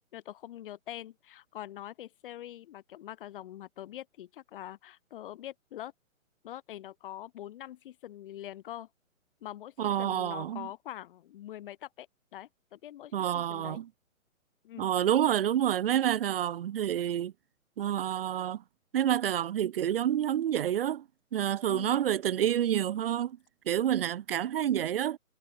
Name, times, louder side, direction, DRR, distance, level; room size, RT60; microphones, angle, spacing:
voice 1, 0.1-5.9 6.4-8.9 9.4-12.1 12.3-13.8 14.6-14.9 21.7-22.0, left 12 dB, 40° left, 5.9 m, -44 dB
voice 2, 9.8-10.7 13.1-13.9 14.8-17.3 17.8-18.6 18.9-21.0 21.3-23.4 23.7-25.2, right 10 dB, 40° right, 2.5 m, -28 dB
figure-of-eight pair, 145°, 42 cm